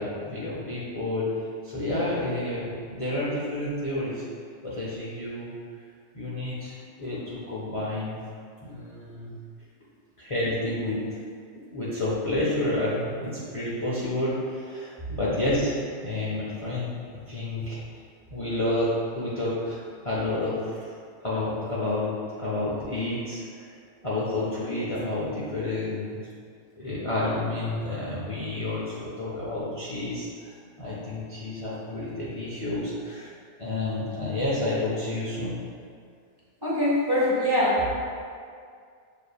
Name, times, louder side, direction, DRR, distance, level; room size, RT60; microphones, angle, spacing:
voice 1, 0.0-4.2 4.6-5.5 6.1-8.2 8.6-9.3 10.2-11.0 11.7-17.8 18.3-20.9 21.2-23.7 24.0-26.3 26.8-33.3 33.6-35.6, left 1 dB, 40° left, -9 dB, 0.5 m, -30 dB
voice 2, 36.6-37.9, left 1 dB, 20° right, -9 dB, 0.9 m, -23 dB
6.4 x 2.8 x 2.3 m, 2.2 s
omnidirectional pair, 1.2 m